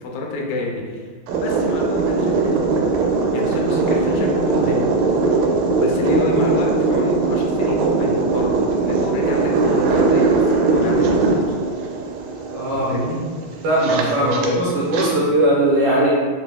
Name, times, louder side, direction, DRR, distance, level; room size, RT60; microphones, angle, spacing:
voice 1, 0.0-1.1 1.4-2.8 3.3-4.9 5.8-11.6 12.7-13.2 14.3-14.4, left 2 dB, 85° left, 0 dB, 2.3 m, -28 dB
sound 1, 1.3-15.1, right 3 dB, 90° right, 2.3 m, -20 dB
voice 2, 12.5-12.9 13.6-16.2, right 1 dB, 70° right, -7 dB, 2.0 m, -18 dB
6.5 x 2.3 x 2.2 m, 1.5 s
omnidirectional pair, 3.9 m